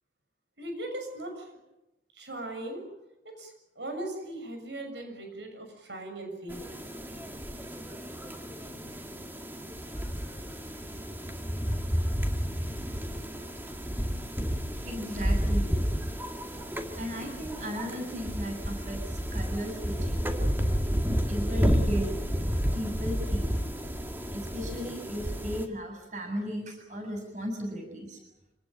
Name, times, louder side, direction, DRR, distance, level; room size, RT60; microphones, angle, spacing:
voice 1, 0.6-1.6 2.1-2.9 3.2-6.8 10.0-10.6, right 1 dB, 85° right, 4 dB, 6.7 m, -39 dB
sound 1, 6.5-25.7, equal, 10° right, 2.2 m, -31 dB
voice 2, 14.7-15.7 17.0-20.3 21.3-22.1 22.7-23.6 24.3-28.2, equal, 45° right, 4 dB, 7.5 m, -36 dB
26.5 x 19.5 x 9.0 m, 0.91 s
head